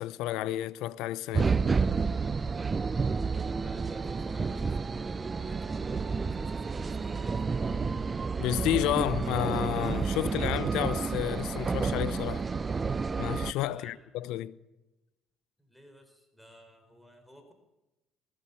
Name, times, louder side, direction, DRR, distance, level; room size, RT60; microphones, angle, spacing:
voice 1, 0.0-1.6 8.4-12.5 13.2-14.6, left 14 dB, 80° left, 0.8 m, -31 dB
sound 1, 1.3-13.5, right 5 dB, 30° right, 0.7 m, -30 dB
voice 2, 3.4-7.5 13.7-14.1 15.6-17.5, equal, ahead, 4.6 m, -53 dB
sound 2, 7.5-10.7, right 5 dB, 75° right, 2.9 m, -47 dB
20.0 x 19.0 x 7.1 m
supercardioid pair, 85°, 0 cm